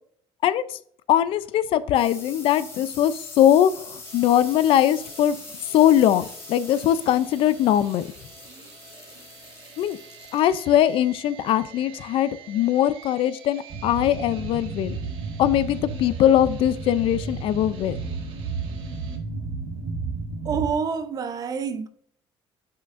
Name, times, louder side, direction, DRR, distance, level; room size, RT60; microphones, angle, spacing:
voice 1, 0.4-0.8 1.1-5.4 5.7-8.1 9.8-10.0 10.3-15.0 15.4-18.0, left 11 dB, 65° left, 0.4 m, -21 dB
sound 1, 1.2-12.5, left 3 dB, 30° left, 2.0 m, -44 dB
sound 2, 4.0-19.2, right 6 dB, 60° right, 1.4 m, -48 dB
sound 3, 13.7-20.7, right 4 dB, 75° right, 1.7 m, -32 dB
voice 2, 20.4-21.9, right 6 dB, 40° right, 0.6 m, -27 dB
8.4 x 5.7 x 2.5 m
cardioid pair, 150°, 10 cm